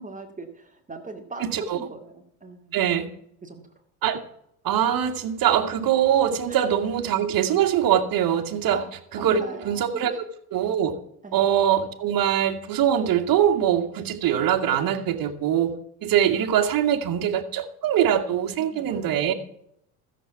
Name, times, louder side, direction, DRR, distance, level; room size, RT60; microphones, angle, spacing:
voice 1, 0.0-2.8 3.4-3.6 6.5-6.6 8.7-8.9 9.2-10.2 11.2-11.5 18.5-19.3, right 3 dB, 15° right, 4 dB, 2.4 m, -40 dB
voice 2, 2.7-3.1 4.0-4.2 4.6-8.8 9.1-10.1 10.5-10.9 11.3-15.7 16.0-19.3, right 10 dB, 50° right, 6 dB, 2.2 m, -23 dB
14.0 x 7.7 x 7.1 m, 0.71 s
hypercardioid pair, 80°, 45 cm